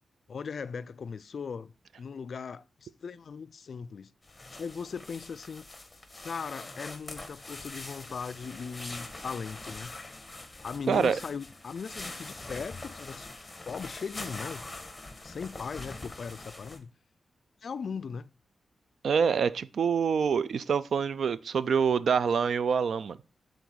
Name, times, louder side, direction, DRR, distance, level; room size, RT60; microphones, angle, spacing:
voice 1, 0.3-1.7 2.0-4.1 4.6-5.6 6.2-10.0 10.6-13.3 13.7-14.6 15.2-16.9 17.6-18.3, left 6 dB, 65° left, 0.3 m, -38 dB
sound 1, 4.2-16.8, left 2 dB, 20° left, 1.2 m, -44 dB
voice 2, 19.0-23.2, right 6 dB, 75° right, 0.4 m, -26 dB
7.1 x 3.8 x 6.2 m
wide cardioid pair, 105°, 0 cm